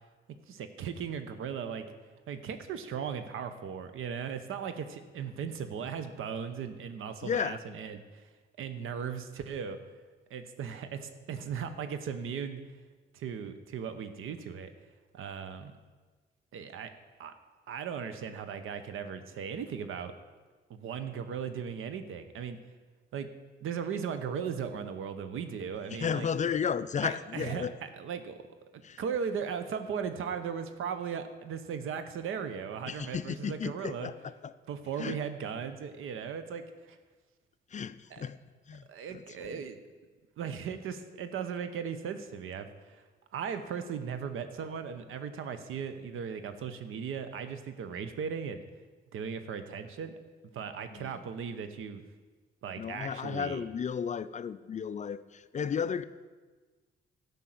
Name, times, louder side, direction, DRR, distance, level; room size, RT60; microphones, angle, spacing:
voice 1, 0.3-1.9 2.3-8.2 8.6-9.8 10.3-12.6 13.1-14.7 15.1-15.7 16.5-16.9 17.2-17.3 17.7-20.1 20.7-22.6 23.1-23.3 23.6-26.3 27.0-27.7 28.0-28.4 29.0-34.1 34.7-37.0 38.1-38.2 38.9-39.8 40.4-43.0 43.3-48.6 49.1-50.1 50.5-52.0 52.6-53.6, right 7 dB, 85° right, 10 dB, 0.9 m, -37 dB
voice 2, 7.2-7.6 25.9-27.7 28.8-29.0 32.9-34.5 35.0-35.2 37.7-38.4 38.7-39.7 50.9-51.2 52.8-56.0, left 7 dB, 35° left, 14 dB, 0.4 m, -34 dB
12.0 x 5.4 x 7.7 m, 1.4 s
cardioid pair, 110°, 20 cm